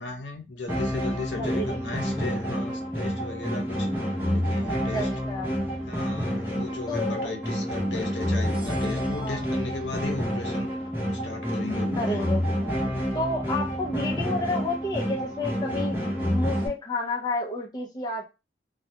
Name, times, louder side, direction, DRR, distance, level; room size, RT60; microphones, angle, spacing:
voice 1, 0.0-3.9 4.3-5.0 5.9-10.7 11.0-12.3, left 3 dB, 90° left, 3 dB, 0.7 m, -36 dB
sound 1, 0.7-16.7, equal, 10° right, 0.7 m, -28 dB
voice 2, 1.4-1.8 4.9-5.5 6.9-7.3 9.2-9.5 12.0-12.4 13.1-16.0 16.3-18.2, left 2 dB, 25° left, -2 dB, 0.5 m, -30 dB
2.2 x 2.1 x 2.7 m, 0.27 s
head